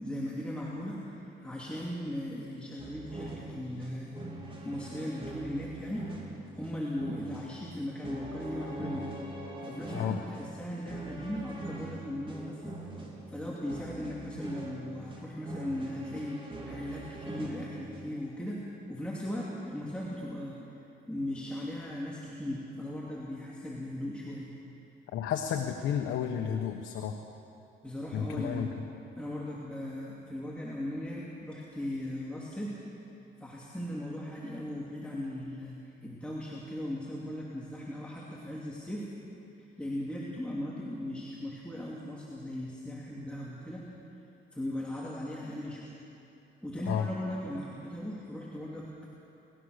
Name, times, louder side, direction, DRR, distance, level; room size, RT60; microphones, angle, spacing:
voice 1, 0.0-4.1 4.6-6.1 6.5-9.1 9.6-12.7 13.3-18.6 18.9-20.6 21.1-24.5 27.8-28.7 29.2-32.8 33.4-39.1 39.8-43.9 44.5-45.9 46.6-49.1, left 1 dB, 5° left, -5 dB, 2.8 m, -38 dB
sound 1, 2.8-18.2, right 2 dB, 25° right, 4.1 m, -43 dB
voice 2, 25.1-27.2 28.1-28.7 46.9-47.1, left 8 dB, 85° left, 3 dB, 1.2 m, -32 dB
30.0 x 14.0 x 6.6 m, 2.9 s
cardioid pair, 90°, 20 cm